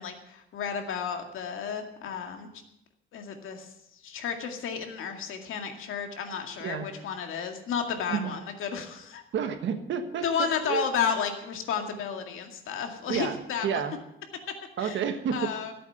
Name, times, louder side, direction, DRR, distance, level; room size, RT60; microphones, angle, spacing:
voice 1, 0.0-2.5 3.1-9.2 10.2-13.8 14.8-15.0 15.3-15.7, left 7 dB, 75° left, 4 dB, 2.1 m, -32 dB
voice 2, 9.3-10.9 13.1-14.0 14.8-15.6, right 7 dB, 65° right, 8 dB, 1.5 m, -30 dB
15.0 x 8.5 x 8.0 m, 0.83 s
cardioid pair, 180°, 21 cm